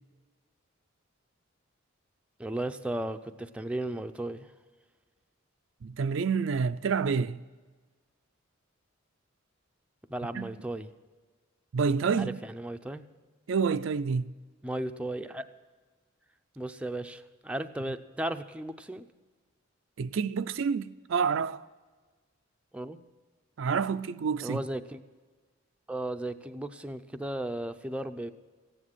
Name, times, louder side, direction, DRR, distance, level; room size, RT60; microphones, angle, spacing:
voice 1, 2.4-4.5 10.1-10.9 12.2-13.0 14.6-15.4 16.6-19.1 22.7-23.0 24.4-25.0 25.9-28.3, right 1 dB, 5° right, 0.5 m, -35 dB
voice 2, 5.8-7.4 10.3-10.5 11.7-12.4 13.5-14.3 20.0-21.7 23.6-24.6, right 5 dB, 60° right, 0.4 m, -28 dB
15.5 x 9.9 x 6.1 m
head